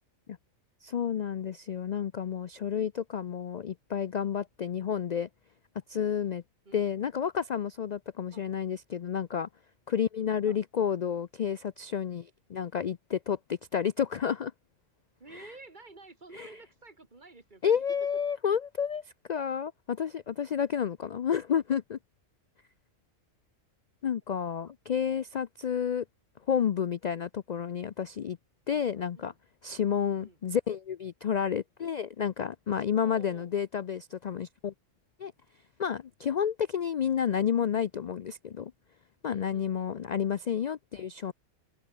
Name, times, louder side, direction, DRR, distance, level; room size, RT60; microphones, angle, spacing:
voice 1, 0.8-5.3 5.9-6.4 6.7-9.5 9.9-14.5 15.3-15.5 16.3-16.5 17.6-22.0 24.0-26.0 26.5-28.4 28.7-29.3 29.6-34.7 35.2-35.3 35.8-38.7 39.2-41.3, left 8 dB, 75° left, 0.3 m, -30 dB
voice 2, 6.6-7.1 8.3-8.5 10.4-10.6 15.2-17.8 18.1-18.2 28.9-29.4 30.1-30.4 32.9-33.5 39.2-40.1, right 3 dB, 35° right, 3.0 m, -52 dB
open air
omnidirectional pair, 1.4 m